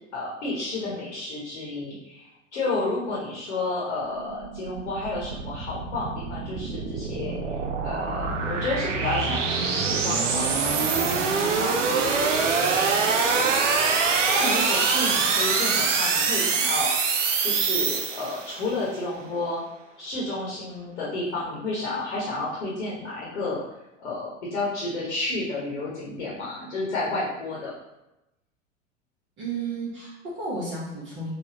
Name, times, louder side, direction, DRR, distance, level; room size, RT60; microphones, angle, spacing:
voice 1, 0.1-13.6 13.9-16.9 17.4-19.6 20.0-23.6 24.0-27.7, left 2 dB, 65° left, -5 dB, 1.0 m, -31 dB
sound 1, 4.1-18.6, right 5 dB, 75° right, 0.5 m, -25 dB
voice 2, 29.4-31.3, right 3 dB, 30° right, -7 dB, 0.8 m, -32 dB
3.3 x 2.2 x 2.8 m, 0.93 s
figure-of-eight pair, 85°, 38 cm